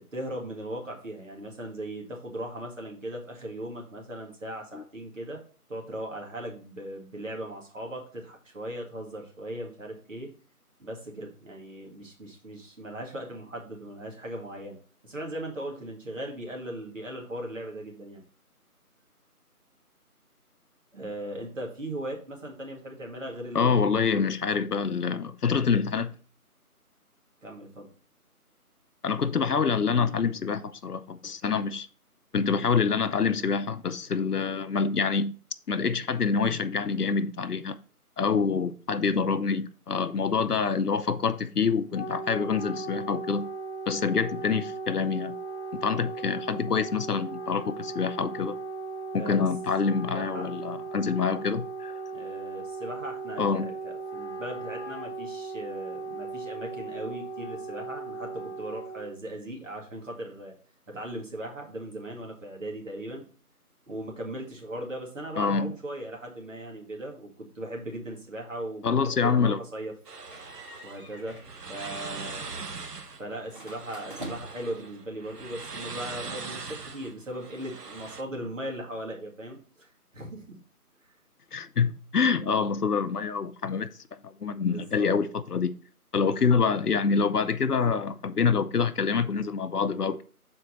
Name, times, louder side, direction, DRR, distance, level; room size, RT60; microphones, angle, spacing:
voice 1, 0.0-5.4 5.7-10.3 10.8-14.8 15.0-18.2 20.9-24.2 27.4-27.9 49.2-49.4 50.1-50.5 52.1-60.5 60.9-63.3 63.9-69.9 70.8-71.4 71.7-72.5 73.2-80.6 81.0-81.2 84.7-85.1, right 1 dB, 55° right, 2.1 m, -38 dB
voice 2, 23.5-26.1 29.0-31.9 32.3-35.3 35.7-37.8 38.2-43.5 43.9-45.3 45.7-48.6 49.1-51.9 53.4-53.7 65.4-65.7 68.8-69.6 81.5-85.7 86.1-90.2, left 5 dB, 80° left, 0.7 m, -26 dB
Wind instrument woodwind instrument, 41.7-59.2, right 3 dB, 45° left, 0.8 m, -37 dB
sound 1, 70.0-78.2, right 4 dB, 90° right, 1.0 m, -41 dB
sound 2, 70.3-71.5 71.8-72.1 73.5-74.7, right 1 dB, 35° right, 1.6 m, -43 dB
6.5 x 4.4 x 4.2 m
figure-of-eight pair, 170°, 46 cm